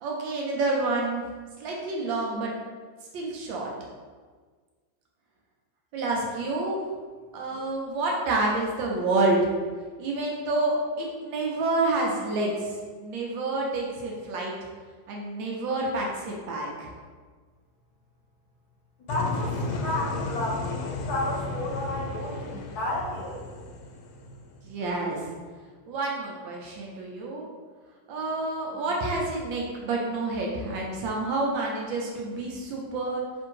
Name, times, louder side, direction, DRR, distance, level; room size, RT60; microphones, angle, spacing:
voice 1, 0.0-1.3 1.6-2.5 3.1-3.7 5.9-6.8 7.3-9.4 10.0-12.7 13.0-14.5 15.1-16.9 24.6-25.3 25.9-27.5 28.1-33.2, right 2 dB, 75° right, -2 dB, 1.4 m, -28 dB
sound 1, 19.1-25.0, left 3 dB, 80° left, 1.3 m, -34 dB
voice 2, 19.1-19.6 19.8-23.4, left 1 dB, 65° left, -5 dB, 1.1 m, -32 dB
3.5 x 2.6 x 4.6 m, 1.5 s
omnidirectional pair, 2.2 m